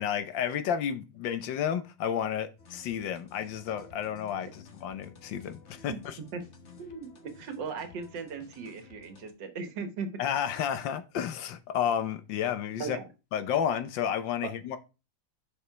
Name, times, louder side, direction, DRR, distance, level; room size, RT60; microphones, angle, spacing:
voice 1, 0.0-6.2 10.2-13.0 13.3-14.8, left 9 dB, 85° left, 1.6 m, -31 dB
sound 1, 2.6-9.3, left 4 dB, 45° left, 1.3 m, -54 dB
voice 2, 6.8-10.1 12.8-13.1, right 5 dB, 75° right, 1.8 m, -38 dB
6.9 x 5.5 x 4.6 m
omnidirectional pair, 2.0 m